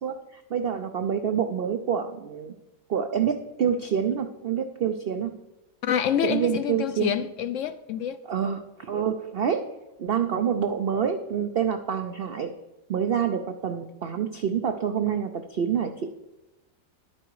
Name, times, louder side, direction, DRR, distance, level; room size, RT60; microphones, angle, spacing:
voice 1, 0.0-2.5 2.9-5.3 6.2-7.1 8.3-9.7 10.0-12.5 12.9-16.1, right 8 dB, 85° right, 0.5 m, -27 dB
voice 2, 5.8-8.2, left 9 dB, 70° left, 0.7 m, -27 dB
11.0 x 8.8 x 4.7 m
omnidirectional pair, 1.8 m